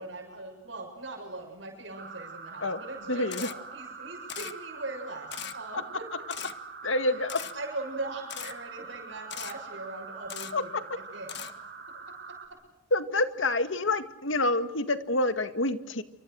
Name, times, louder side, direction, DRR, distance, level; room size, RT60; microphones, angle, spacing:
voice 1, 0.0-6.1 7.1-7.2 7.5-11.5 12.3-12.6, right 2 dB, 70° right, 3 dB, 7.3 m, -40 dB
sound 1, 2.0-12.5, right 5 dB, 55° right, 4.9 m, -44 dB
voice 2, 3.1-3.5 5.7-5.8 6.8-7.4 10.5-10.6 12.9-16.0, left 2 dB, 85° left, 10 dB, 2.1 m, -27 dB
Camera, 3.3-3.5 4.3-4.5 5.3-5.5 6.3-6.5 7.3-7.5 8.3-8.5 9.3-9.5 10.3-10.5 11.3-11.5, left 10 dB, 60° left, 1.7 m, -38 dB
28.5 x 26.0 x 6.5 m, 0.93 s
head